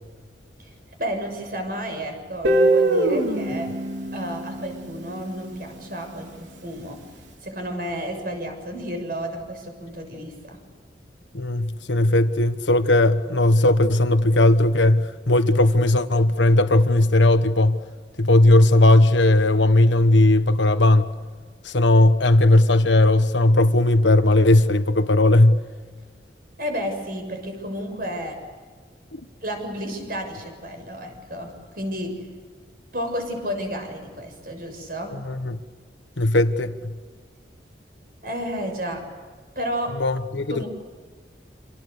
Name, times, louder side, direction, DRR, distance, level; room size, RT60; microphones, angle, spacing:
voice 1, 1.0-3.7 4.1-7.0 7.4-10.6 26.6-28.4 29.4-32.2 32.9-35.2 38.2-39.1 39.5-40.0 40.5-40.7, equal, 50° right, 6.8 m, -31 dB
Guitar, 2.4-5.4, right 1 dB, 90° right, 4.1 m, -22 dB
voice 2, 11.3-17.8 18.2-21.1 21.6-25.6 29.1-29.2 35.2-35.6 36.2-36.9 40.0-40.6, left 1 dB, 85° left, 1.3 m, -17 dB
28.5 x 27.0 x 6.8 m
head